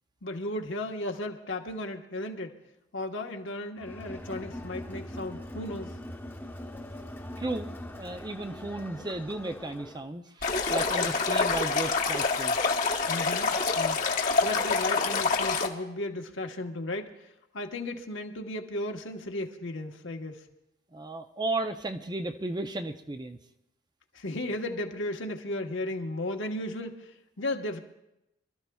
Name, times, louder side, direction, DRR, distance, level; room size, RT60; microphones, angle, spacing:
voice 1, 0.2-2.6 2.9-6.0 11.0-11.1 13.1-17.3 17.5-20.4 24.1-27.8, left 1 dB, 75° left, 3 dB, 1.2 m, -35 dB
Crowd, 3.8-10.1, left 1 dB, 10° left, 0.9 m, -42 dB
voice 2, 7.4-7.7 8.0-12.6 20.9-23.4, right 2 dB, 20° right, 7 dB, 0.5 m, -34 dB
Stream, 10.4-15.7, left 4 dB, 45° left, 1.0 m, -26 dB
26.5 x 13.0 x 2.3 m, 0.88 s
head